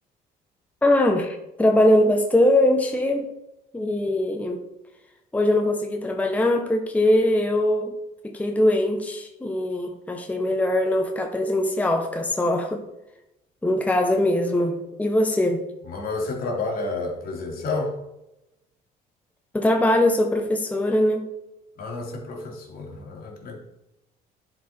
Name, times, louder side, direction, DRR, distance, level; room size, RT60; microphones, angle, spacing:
voice 1, 0.8-3.3 3.7-4.6 5.3-8.0 8.2-12.8 13.6-15.7 19.5-21.3, left 1 dB, 10° left, 4 dB, 0.8 m, -21 dB
voice 2, 15.8-17.9 21.8-23.6, left 3 dB, 60° left, -1 dB, 2.8 m, -30 dB
11.0 x 5.1 x 4.3 m, 0.90 s
cardioid pair, 110°, 17 cm